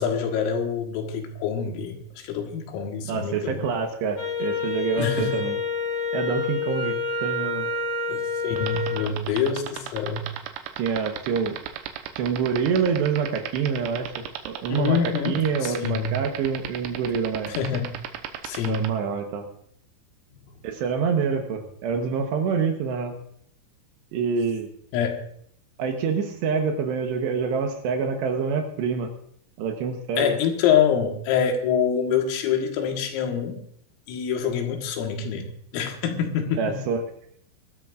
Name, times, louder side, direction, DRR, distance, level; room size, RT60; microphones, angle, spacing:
voice 1, 0.0-2.0 2.2-3.6 5.0-5.3 8.1-10.2 14.7-16.1 17.5-17.9 18.4-18.9 20.3-20.4 24.9-25.2 30.2-33.6 34.1-35.4 35.7-36.6, left 7 dB, 90° left, 3 dB, 4.2 m, -25 dB
voice 2, 3.0-5.6 6.1-7.7 10.8-11.6 12.2-14.1 14.4-17.6 18.7-19.5 20.6-23.1 24.1-24.7 25.8-29.1 29.6-30.3 36.6-37.0, right 6 dB, 70° right, 4 dB, 2.9 m, -26 dB
Wind instrument woodwind instrument, 4.2-9.0, left 4 dB, 30° left, 5.0 m, -28 dB
sound 1, 8.6-18.9, right 14 dB, 90° right, 3.6 m, -33 dB
22.5 x 13.0 x 2.5 m, 0.67 s
omnidirectional pair, 5.8 m